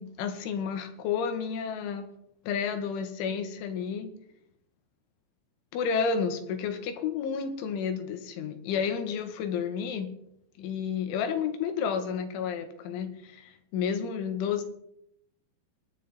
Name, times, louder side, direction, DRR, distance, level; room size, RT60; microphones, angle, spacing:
voice 1, 0.0-2.1 2.5-4.1 5.7-10.1 10.6-14.6, left 6 dB, 80° left, 7 dB, 3.8 m, -31 dB
20.5 x 11.0 x 4.1 m, 0.76 s
omnidirectional pair, 5.5 m